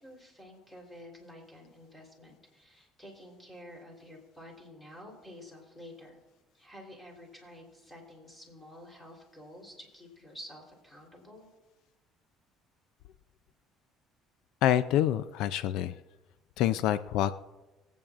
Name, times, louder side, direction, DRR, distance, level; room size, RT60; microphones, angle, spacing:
voice 1, 0.0-6.2 6.5-11.5, left 1 dB, 10° left, -1 dB, 3.5 m, -50 dB
voice 2, 14.6-16.0 16.6-17.3, left 11 dB, 75° left, 13 dB, 0.4 m, -27 dB
24.5 x 8.7 x 2.5 m, 1.1 s
cardioid pair, 115°, 0 cm